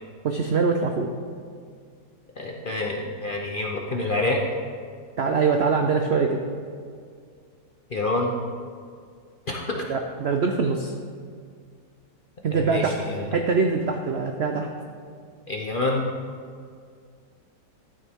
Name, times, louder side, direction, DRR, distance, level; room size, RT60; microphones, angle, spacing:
voice 1, 0.2-1.1 5.2-6.4 9.9-10.9 12.4-12.9 13.2-14.7, right 5 dB, 85° right, 4 dB, 0.5 m, -23 dB
voice 2, 2.4-4.4 7.9-8.3 9.5-9.9 12.5-13.2 15.5-16.1, left 2 dB, 50° left, -1 dB, 0.6 m, -27 dB
13.0 x 8.7 x 3.6 m, 2.1 s
omnidirectional pair, 1.9 m